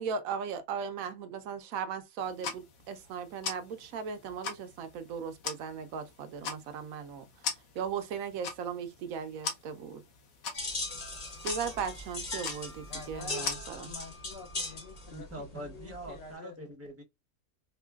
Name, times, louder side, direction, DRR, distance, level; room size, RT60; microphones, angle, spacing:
voice 1, 0.0-7.3 7.7-10.0 11.4-13.9, right 6 dB, 75° right, 1.0 m, -37 dB
sound 1, 2.2-13.6, left 5 dB, 75° left, 1.2 m, -42 dB
sound 2, 10.5-16.3, left 2 dB, 30° left, 1.0 m, -39 dB
Wind instrument woodwind instrument, 10.8-15.2, left 2 dB, 50° right, 1.2 m, -56 dB
voice 2, 12.9-16.6, left 4 dB, 60° left, 0.7 m, -48 dB
voice 3, 15.1-17.0, right 1 dB, 15° right, 0.6 m, -43 dB
4.6 x 2.2 x 2.3 m
omnidirectional pair, 1.5 m